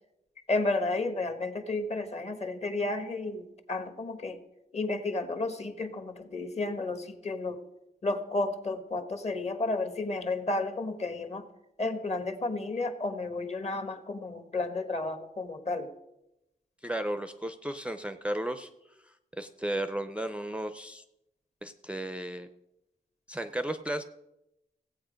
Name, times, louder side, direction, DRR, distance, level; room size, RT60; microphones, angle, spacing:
voice 1, 0.5-4.4 4.7-7.6 8.0-11.5 11.8-15.9, left 2 dB, 40° left, 8 dB, 1.2 m, -32 dB
voice 2, 16.8-18.7 19.4-21.0 21.6-22.5 23.3-24.0, right 1 dB, 5° right, 9 dB, 0.5 m, -34 dB
16.5 x 8.4 x 5.1 m, 0.89 s
wide cardioid pair, 165°, 17 cm